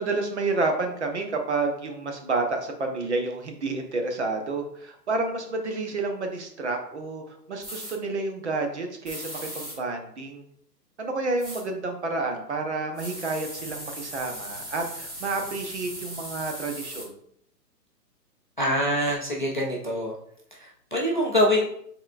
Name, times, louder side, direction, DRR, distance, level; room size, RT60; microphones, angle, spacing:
voice 1, 0.0-10.5 11.0-17.1, right 3 dB, 45° right, 4 dB, 0.7 m, -30 dB
sound 1, 7.6-8.0 9.1-9.8 11.4-11.6 13.0-17.1, equal, 20° right, 1.2 m, -38 dB
voice 2, 18.6-20.1 20.6-21.6, equal, 30° left, -3 dB, 0.4 m, -24 dB
5.5 x 3.7 x 2.4 m, 0.69 s
hypercardioid pair, 170°, 49 cm